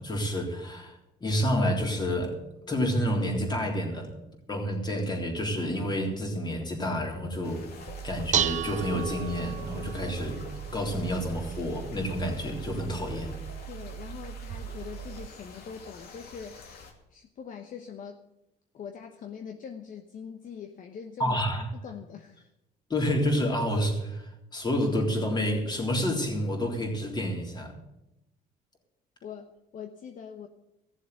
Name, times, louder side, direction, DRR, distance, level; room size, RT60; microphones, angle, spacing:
voice 1, 0.0-2.4 2.7-4.1 4.5-10.4 10.7-13.3 21.2-21.6 22.9-27.7, equal, 25° left, 1 dB, 3.6 m, -29 dB
sound 1, 7.4-16.9, left 4 dB, 70° left, 2.5 m, -48 dB
Dishes pots and pans, 7.9-15.3, right 10 dB, 45° right, 0.4 m, -35 dB
voice 2, 13.7-16.8 17.1-18.2 18.7-22.5 29.2-30.5, left 7 dB, 50° left, 5 dB, 1.1 m, -43 dB
15.5 x 7.3 x 8.0 m, 0.90 s
cardioid pair, 110°, 17 cm